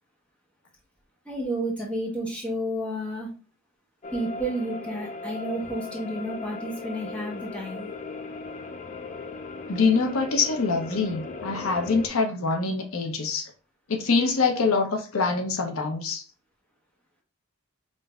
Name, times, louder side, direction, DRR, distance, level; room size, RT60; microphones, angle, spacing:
voice 1, 1.2-3.3 4.1-7.9, right 1 dB, 5° left, -2 dB, 0.9 m, -31 dB
sound 1, 4.0-12.1, left 3 dB, 35° left, 0.3 m, -38 dB
voice 2, 9.7-13.5 13.9-16.2, left 4 dB, 80° left, 4 dB, 0.7 m, -25 dB
5.1 x 2.6 x 2.3 m, 0.36 s
head